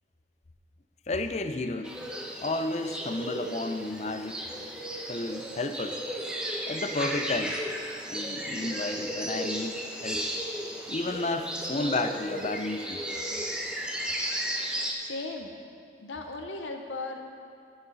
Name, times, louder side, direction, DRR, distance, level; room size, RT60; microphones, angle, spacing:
voice 1, 1.1-1.9 2.4-4.4 5.1-6.0 6.7-7.7 8.1-10.3 10.9-13.0, left 2 dB, 35° left, 8 dB, 0.5 m, -32 dB
sound 1, 1.8-14.9, equal, 5° right, 0.7 m, -34 dB
voice 2, 15.0-15.5 16.0-17.3, left 3 dB, 90° left, 4 dB, 0.7 m, -36 dB
16.0 x 6.5 x 3.9 m, 2.4 s
head